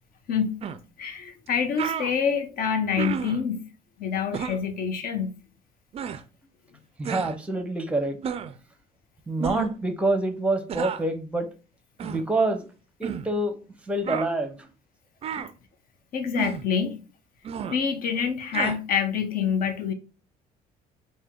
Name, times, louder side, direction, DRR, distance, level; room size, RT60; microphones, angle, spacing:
voice 1, 0.3-0.6 1.0-3.7 4.0-5.3 16.1-17.0 17.7-19.9, left 7 dB, 60° left, 0.8 m, -26 dB
sound 1, 0.6-0.8 1.5-1.6 1.8-2.1 3.0-3.4 4.3-4.6 5.9-6.2 7.0-7.3 8.2-8.6 9.4-9.7 10.7-11.1 12.0-12.2 13.0-13.3 14.0-14.3 15.2-15.5 16.4-16.7 17.4-17.7 18.5-18.8, right 7 dB, 35° right, 0.3 m, -31 dB
voice 2, 7.0-8.2 9.3-11.5 12.0-12.7 13.0-13.5 13.9-14.7, right 2 dB, 5° right, 0.7 m, -26 dB
4.4 x 2.2 x 3.5 m
cardioid pair, 110°, 17 cm